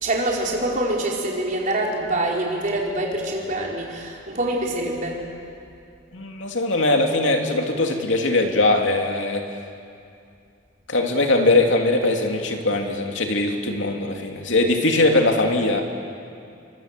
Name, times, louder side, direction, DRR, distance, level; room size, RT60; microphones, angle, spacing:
voice 1, 0.0-5.2, right 1 dB, 40° right, -2 dB, 4.6 m, -25 dB
voice 2, 6.1-9.5 10.9-15.8, left 2 dB, 70° left, 2 dB, 2.8 m, -21 dB
30.0 x 24.0 x 7.6 m, 2.5 s
head